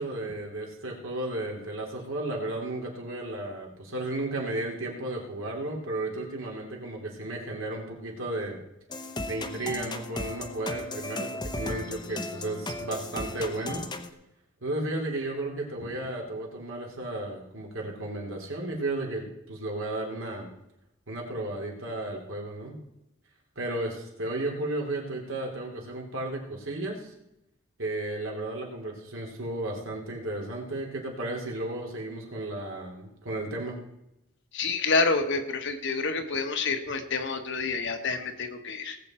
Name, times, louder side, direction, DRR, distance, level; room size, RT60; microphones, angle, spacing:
voice 1, 0.0-8.6 9.3-13.8 14.6-20.5 21.1-22.8 23.5-27.1 27.8-33.8, right 2 dB, 65° right, 0 dB, 3.1 m, -34 dB
sound 1, 8.9-14.1, left 2 dB, 20° left, 0.9 m, -36 dB
voice 2, 34.5-39.0, left 4 dB, 55° left, 5 dB, 1.3 m, -28 dB
18.5 x 8.1 x 4.4 m, 0.85 s
head